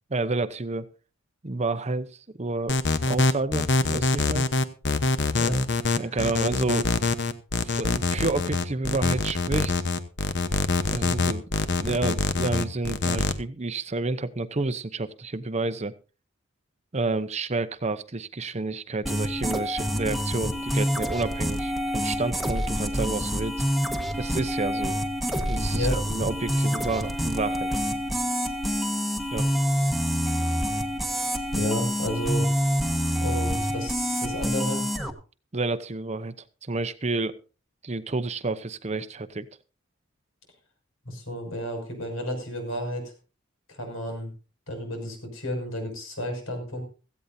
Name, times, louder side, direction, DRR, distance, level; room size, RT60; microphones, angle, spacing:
voice 1, 0.1-0.9 1.4-2.1 2.4-2.8 3.1-4.5 6.0-6.9 7.6-9.7 10.9-11.5 11.8-15.9 16.9-23.6 24.2-25.0 25.5-27.7 29.3-29.5 35.5-36.3 36.6-37.4 37.8-39.5, right 3 dB, 30° right, 12 dB, 0.8 m, -29 dB
sound 1, 2.7-13.3, left 3 dB, 55° left, 1.0 m, -24 dB
sound 2, 19.1-35.1, equal, ahead, 1.4 m, -27 dB
voice 2, 25.7-26.0 31.5-32.5 33.2-34.8 41.0-43.1 43.7-44.3 44.7-46.8, equal, 75° left, 4 dB, 6.3 m, -31 dB
17.0 x 15.0 x 2.7 m, 0.34 s
head